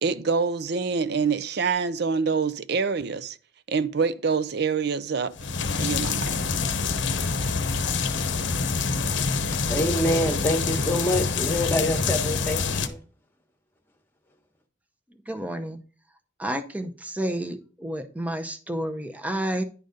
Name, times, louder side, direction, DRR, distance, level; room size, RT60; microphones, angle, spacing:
voice 1, 0.0-3.4 3.7-5.3 5.8-6.2, right 5 dB, 55° right, 0.5 m, -25 dB
sound 1, 5.4-12.9, left 4 dB, 65° left, 0.8 m, -26 dB
voice 2, 9.3-13.0, left 1 dB, 10° left, 1.2 m, -26 dB
voice 3, 15.3-15.8 16.4-19.6, right 1 dB, 10° right, 0.7 m, -30 dB
10.5 x 4.0 x 5.1 m
head